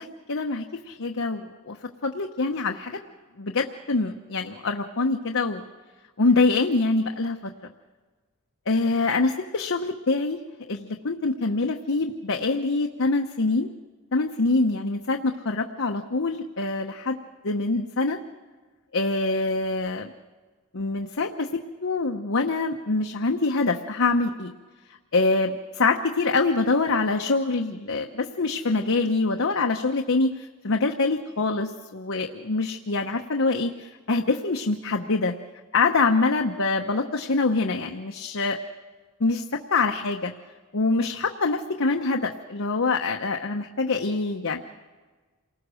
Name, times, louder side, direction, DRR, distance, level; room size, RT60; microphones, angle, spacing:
voice 1, 0.0-1.8 2.0-3.0 3.4-5.6 6.2-7.4 8.7-10.4 10.7-13.7 14.1-17.2 17.4-18.2 18.9-20.1 20.7-24.5 25.1-35.3 35.7-38.6 39.2-39.4 39.7-40.3 40.7-44.6, left 3 dB, 60° left, 3 dB, 1.0 m, -25 dB
28.0 x 19.5 x 6.4 m, 1.4 s
head